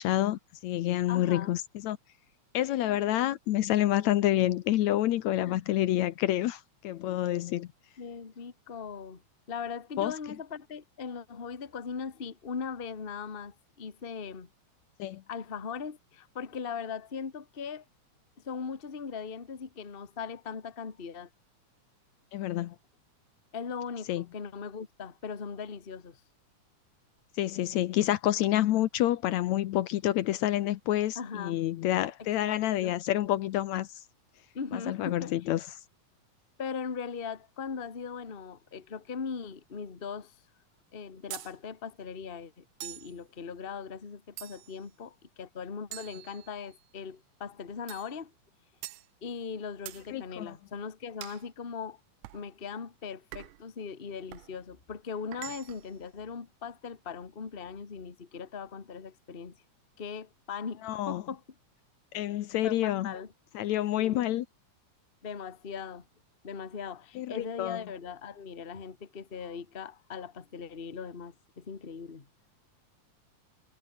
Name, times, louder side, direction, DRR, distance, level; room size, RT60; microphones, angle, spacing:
voice 1, 0.0-2.0 2.5-7.7 10.0-10.1 15.0-15.2 22.3-22.8 24.1-24.3 27.4-33.9 34.7-35.7 50.1-50.6 60.8-61.2 62.1-63.1 63.5-64.5 67.2-67.8, left 13 dB, 70° left, 2.0 m, -28 dB
voice 2, 1.1-1.6 5.4-5.6 8.0-9.2 9.5-14.5 15.3-17.8 18.4-21.3 23.5-26.2 31.1-31.6 32.4-32.9 34.5-35.3 36.6-40.3 40.9-48.3 49.2-52.0 52.3-59.6 60.0-61.4 62.6-63.3 64.0-64.2 65.2-66.0 66.4-72.3, left 6 dB, 25° left, 1.3 m, -39 dB
sound 1, 41.3-41.6 42.8-43.2 44.4-44.8 45.9-46.8 47.9-48.2 48.8-49.1 49.9-50.1 51.2-51.5 52.2-52.5 53.3-53.7 54.3-54.5 55.3-55.9, right 18 dB, 85° right, 2.2 m, -44 dB
omnidirectional pair, 3.6 m